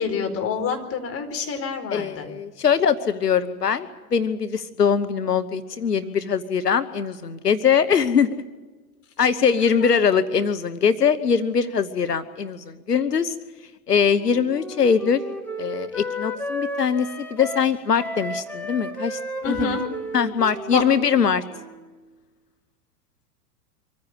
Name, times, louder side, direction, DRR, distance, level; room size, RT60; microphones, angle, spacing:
voice 1, 0.0-2.3 9.8-9.9 19.4-19.8 20.7-20.8, left 5 dB, 30° left, 5 dB, 4.5 m, -27 dB
voice 2, 1.9-8.4 9.2-13.3 13.9-15.2 15.6-19.2 19.5-19.8 20.1-21.4, left 6 dB, 90° left, 13 dB, 1.1 m, -22 dB
Wind instrument woodwind instrument, 14.0-22.0, left 1 dB, 5° left, 3.8 m, -33 dB
25.0 x 15.0 x 9.6 m, 1.2 s
hypercardioid pair, 100°, 46 cm